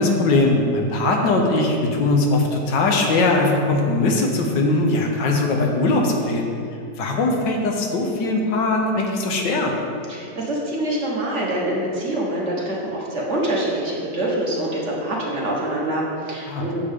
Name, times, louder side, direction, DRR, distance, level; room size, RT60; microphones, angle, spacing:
voice 1, 0.0-6.5 7.0-9.7 16.5-16.7, left 2 dB, 80° left, 1 dB, 1.6 m, -20 dB
voice 2, 10.1-16.7, right 1 dB, 45° right, -4 dB, 1.5 m, -25 dB
8.5 x 7.6 x 3.6 m, 2.5 s
omnidirectional pair, 1.9 m